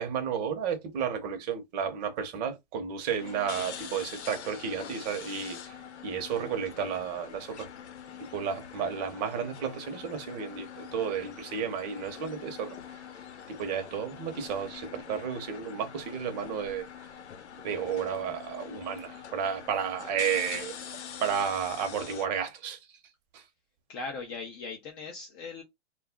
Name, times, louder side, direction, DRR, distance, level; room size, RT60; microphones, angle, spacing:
voice 1, 0.0-5.8 6.0-7.7 8.2-12.8 13.5-16.8 17.6-20.8 21.2-22.8 23.3-23.4, right 7 dB, 40° right, 0.8 m, -32 dB
sound 1, 3.2-22.3, left 8 dB, 80° left, 0.7 m, -44 dB
voice 2, 23.9-25.6, left 4 dB, 20° left, 0.4 m, -39 dB
2.3 x 2.0 x 3.5 m
hypercardioid pair, 135°, 33 cm